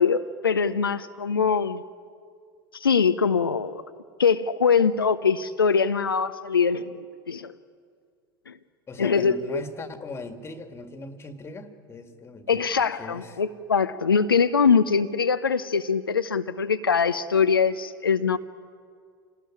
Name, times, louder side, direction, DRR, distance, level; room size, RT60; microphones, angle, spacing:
voice 1, 0.0-1.8 2.7-3.7 4.2-7.5 8.5-8.6 9.0-9.6 12.5-18.4, left 6 dB, 80° left, 9 dB, 0.8 m, -23 dB
voice 2, 8.9-12.7 13.0-13.4, left 3 dB, 20° left, 9 dB, 2.3 m, -39 dB
27.5 x 19.5 x 9.9 m, 2.1 s
figure-of-eight pair, 80°, 12 cm